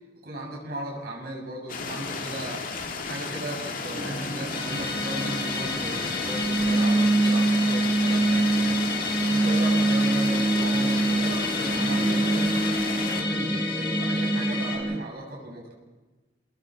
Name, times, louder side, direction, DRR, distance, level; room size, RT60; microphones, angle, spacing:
voice 1, 0.2-2.6 3.0-8.9 9.3-15.7, right 1 dB, 60° right, -2 dB, 7.4 m, -36 dB
sound 1, 1.7-13.2, left 4 dB, 55° left, 2.0 m, -34 dB
sound 2, 4.0-15.0, right 2 dB, 15° right, 1.2 m, -25 dB
Musical instrument, 4.5-14.8, left 4 dB, 70° left, 4.1 m, -32 dB
28.5 x 20.5 x 4.9 m, 1.2 s
head